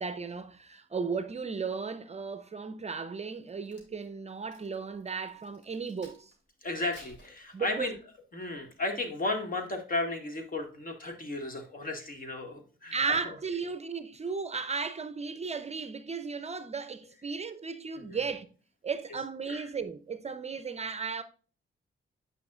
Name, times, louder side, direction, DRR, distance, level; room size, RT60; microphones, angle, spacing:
voice 1, 0.0-6.3 7.5-7.9 12.9-18.5 18.8-21.2, right 5 dB, 30° right, 0.6 m, -35 dB
Crack, 3.3-6.4 6.8-8.0 8.6-8.8, left 1 dB, 60° left, 3.7 m, -57 dB
voice 2, 6.6-7.9 8.3-13.0 13.2-13.3 18.0-18.2 19.5-19.7, left 2 dB, 45° left, 1.9 m, -34 dB
9.4 x 5.7 x 2.4 m
cardioid pair, 105°, 21 cm